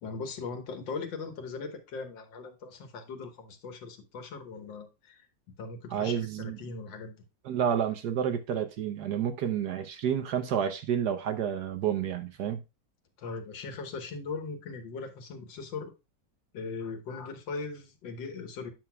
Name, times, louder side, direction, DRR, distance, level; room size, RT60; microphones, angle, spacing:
voice 1, 0.0-5.3 5.6-7.2 13.2-15.9 16.5-18.7, left 4 dB, 75° left, 1.8 m, -39 dB
voice 2, 5.9-6.6 7.4-12.6, right 9 dB, 65° right, 1.1 m, -30 dB
9.0 x 6.0 x 2.2 m
omnidirectional pair, 2.1 m